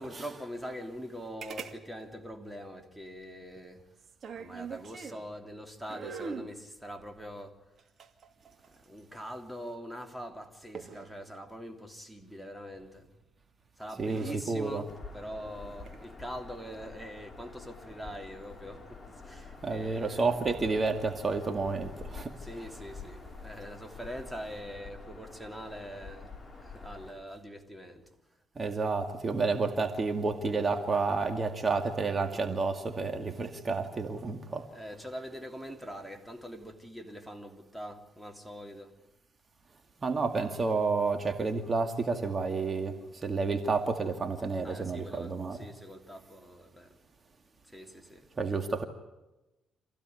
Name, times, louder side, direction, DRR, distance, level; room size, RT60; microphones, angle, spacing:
voice 1, 0.0-3.9 4.3-7.6 8.7-13.1 13.8-20.4 22.3-26.3 26.6-28.1 28.7-28.8 30.9-31.1 34.5-39.0 44.6-47.0 47.7-48.3, equal, 5° right, 3.1 m, -43 dB
sound 1, 1.4-1.8 2.0-2.1 4.0-5.3 5.9-6.5 7.8-9.0 10.8-11.1 13.0-13.3 13.9-14.4 15.7-16.0, right 5 dB, 55° right, 2.6 m, -42 dB
voice 2, 14.0-14.8 19.6-22.3 28.6-34.6 40.0-45.6 48.4-48.8, right 4 dB, 35° right, 2.2 m, -30 dB
Bird vocalization bird call bird song, 14.9-27.1, left 3 dB, 15° left, 6.0 m, -47 dB
26.5 x 16.0 x 9.6 m
cardioid pair, 90°, 0 cm